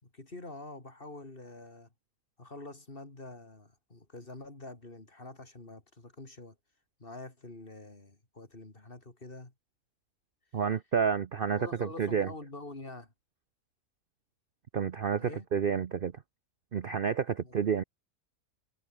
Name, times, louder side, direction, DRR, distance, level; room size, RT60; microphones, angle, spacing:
voice 1, 0.0-1.9 2.4-6.6 7.0-9.5 11.5-13.1 15.2-15.5 17.4-17.5, left 2 dB, 35° left, 3.6 m, -46 dB
voice 2, 10.5-12.3 14.7-16.1 16.7-17.8, right 7 dB, 45° right, 0.8 m, -30 dB
omnidirectional pair, 1.5 m